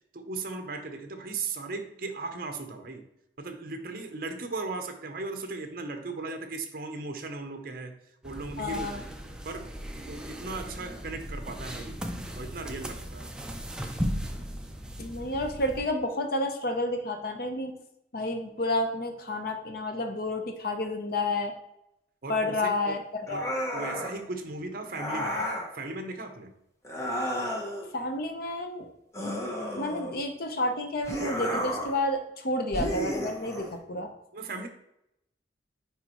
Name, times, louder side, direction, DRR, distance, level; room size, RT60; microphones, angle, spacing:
voice 1, 0.1-3.0 3.4-8.0 8.2-9.2 9.4-9.7 10.1-12.1 12.4-13.3 22.2-23.0 23.3-23.5 23.7-25.4 25.7-26.5 34.3-34.7, right 3 dB, 50° right, 6 dB, 0.7 m, -37 dB
sound 1, 8.2-15.9, equal, 5° right, 0.4 m, -37 dB
voice 2, 8.6-9.0 15.0-17.7 18.1-21.5 22.3-23.5 27.9-28.9 29.8-34.1, left 2 dB, 55° left, 5 dB, 0.8 m, -30 dB
sound 2, 23.3-24.2 24.9-25.7 26.8-27.9 29.1-30.3 31.0-32.0 32.7-33.7, equal, 15° left, 0.9 m, -32 dB
9.3 x 3.4 x 3.0 m, 0.82 s
head